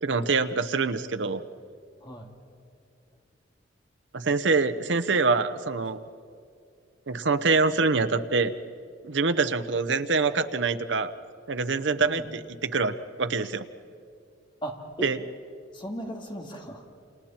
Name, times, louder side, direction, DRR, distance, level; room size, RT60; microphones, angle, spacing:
voice 1, 0.0-1.4 4.1-6.0 7.1-8.5 9.0-11.1 11.5-13.7 15.0-15.2, right 4 dB, 75° right, 9 dB, 0.9 m, -25 dB
voice 2, 2.0-2.3 12.0-12.3 14.6-15.1 15.7-16.8, right 1 dB, 25° left, 1 dB, 2.6 m, -37 dB
29.5 x 28.5 x 4.4 m, 2.4 s
head